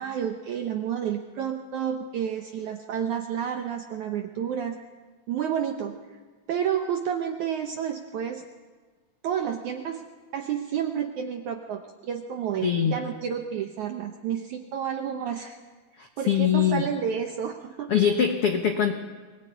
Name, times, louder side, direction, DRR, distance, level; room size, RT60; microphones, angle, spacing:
voice 1, 0.0-4.8 5.3-6.0 6.5-8.5 9.2-15.6 16.2-17.9, right 8 dB, 75° right, 5 dB, 1.8 m, -30 dB
voice 2, 12.6-13.0 16.0-16.8 17.9-18.9, left 8 dB, 70° left, 5 dB, 1.3 m, -23 dB
23.0 x 18.5 x 9.4 m, 1.4 s
omnidirectional pair, 4.7 m